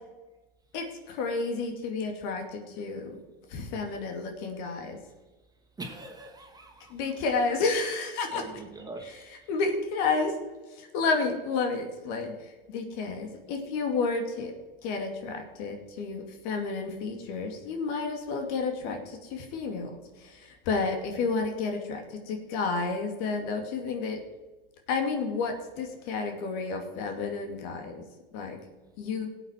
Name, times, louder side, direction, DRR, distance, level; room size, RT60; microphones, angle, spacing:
voice 1, 0.7-3.2 3.5-5.0 6.9-8.4 9.0-10.3 10.7-14.5 14.8-24.2 24.9-28.0 28.3-28.6 29.0-29.3, left 4 dB, 60° left, 2.5 m, -31 dB
voice 2, 5.8-7.1 8.3-9.3, right 2 dB, 15° right, 2.5 m, -43 dB
18.0 x 8.2 x 4.5 m
hypercardioid pair, 90°, 30 cm